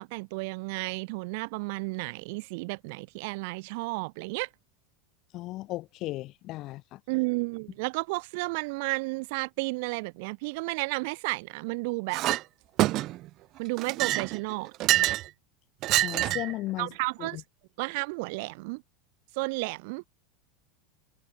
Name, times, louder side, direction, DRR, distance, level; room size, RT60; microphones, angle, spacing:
voice 1, 0.0-4.5 7.1-12.2 13.6-14.7 16.8-17.4 17.8-18.8 19.4-20.0, right 28 dB, 55° right, 4.0 m, -32 dB
voice 2, 5.3-7.0 16.0-16.9 17.2-17.4, left 17 dB, 35° left, 2.0 m, -35 dB
Chink clink, 12.1-12.4 12.8-13.3 13.8-15.3 15.8-16.5, right 16 dB, 35° right, 1.6 m, -26 dB
supercardioid pair, 170°, 0 cm